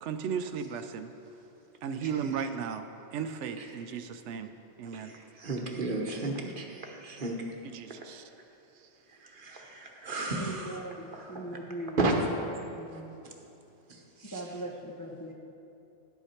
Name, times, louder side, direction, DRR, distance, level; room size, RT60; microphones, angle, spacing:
voice 1, 0.0-1.1 1.8-2.8 3.1-4.5 4.8-5.1 7.7-8.3, right 7 dB, 90° right, 8 dB, 0.9 m, -35 dB
voice 2, 4.9-7.4 9.2-10.8 11.1-11.4 12.0-12.1 12.9-13.0 13.9-14.4, right 2 dB, 50° right, 1 dB, 1.2 m, -34 dB
voice 3, 10.3-12.0 12.3-12.4 12.7-13.1 14.2-15.3, right 1 dB, 20° left, -1 dB, 0.7 m, -40 dB
11.0 x 8.1 x 4.3 m, 2.8 s
omnidirectional pair, 1.2 m